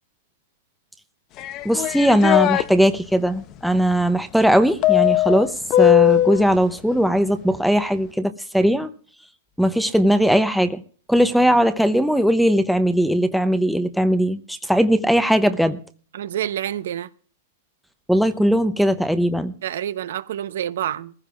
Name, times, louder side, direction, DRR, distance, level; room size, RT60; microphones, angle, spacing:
sound 1, 1.4-2.6 4.8-6.4, left 13 dB, 30° left, 0.7 m, -18 dB
voice 1, 1.6-8.9 9.6-10.8 11.1-15.8 18.1-19.5, equal, ahead, 0.7 m, -19 dB
voice 2, 16.1-17.1 19.6-21.1, right 11 dB, 75° right, 0.9 m, -27 dB
21.0 x 15.0 x 2.4 m
supercardioid pair, 155°, 0 cm